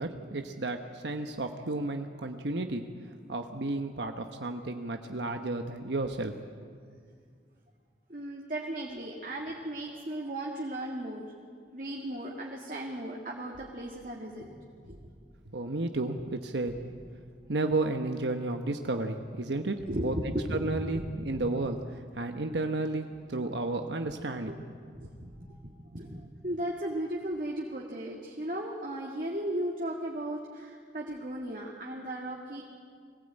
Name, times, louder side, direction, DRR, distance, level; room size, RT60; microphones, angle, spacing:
voice 1, 0.0-2.8 3.3-6.3 15.5-16.8 17.5-20.1 20.5-24.6, right 2 dB, 80° right, 5 dB, 1.1 m, -32 dB
voice 2, 8.1-11.3 11.7-14.5 14.8-15.0 19.9-20.6 20.9-21.1 21.3-21.4 24.5-24.6 25.0-32.6, right 1 dB, 50° right, -2 dB, 2.0 m, -36 dB
23.0 x 16.0 x 8.9 m, 2.1 s
head